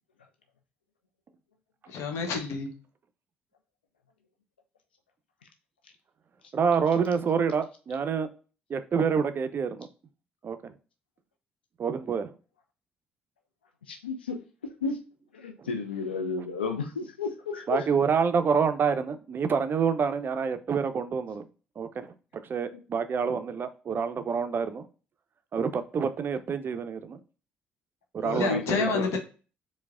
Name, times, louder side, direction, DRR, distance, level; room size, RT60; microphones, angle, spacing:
voice 1, 1.9-2.7 28.2-29.2, left 4 dB, 60° left, 0.8 m, -29 dB
voice 2, 6.5-8.3 8.7-9.9 10.4-10.7 11.8-12.3 17.7-21.4 21.8-22.1 22.5-24.9 25.5-27.2 28.1-28.8, right 6 dB, 40° right, 0.4 m, -27 dB
voice 3, 13.9-15.0 15.3-17.9 23.2-23.3 28.2-29.1, left 4 dB, 85° left, 0.4 m, -32 dB
4.5 x 2.1 x 2.3 m
figure-of-eight pair, 45°, 5 cm